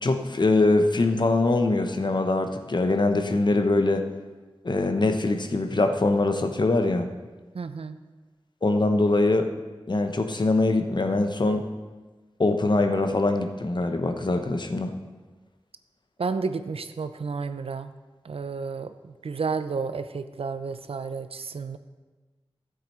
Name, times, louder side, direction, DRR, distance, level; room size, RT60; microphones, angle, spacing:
voice 1, 0.0-4.0 4.6-7.1 8.6-9.5 9.9-11.6 12.4-14.9, left 2 dB, 50° left, 6 dB, 1.0 m, -23 dB
voice 2, 7.5-8.0 16.2-17.9 18.2-21.8, right 4 dB, 80° right, 11 dB, 0.6 m, -31 dB
13.5 x 7.5 x 4.4 m, 1.3 s
wide cardioid pair, 70°, 10 cm